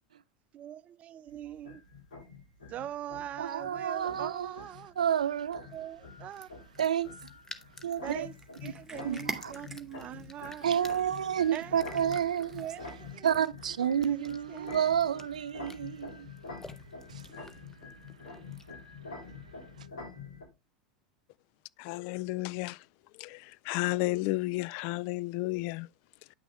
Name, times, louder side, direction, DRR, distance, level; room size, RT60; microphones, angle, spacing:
voice 1, 0.5-1.8 2.7-4.9 5.7-6.5 8.0-10.8 11.5-12.1 12.6-13.3 14.0-14.8, right 11 dB, 40° right, 0.6 m, -42 dB
sound 1, 1.3-20.4, left 4 dB, 85° left, 3.8 m, -47 dB
voice 2, 3.4-4.5 5.0-5.7 6.8-7.1 7.8-8.3 9.0-9.5 10.6-12.5 13.2-16.3 17.1-17.3, right 9 dB, 80° right, 0.4 m, -30 dB
sound 2, 4.0-18.9, left 2 dB, 15° left, 1.1 m, -54 dB
Cat, 8.0-13.2, right 4 dB, 10° right, 2.2 m, -46 dB
voice 3, 21.8-22.9 23.1-25.9, left 20 dB, 55° left, 0.4 m, -32 dB
9.5 x 6.1 x 3.2 m
hypercardioid pair, 85°, 4 cm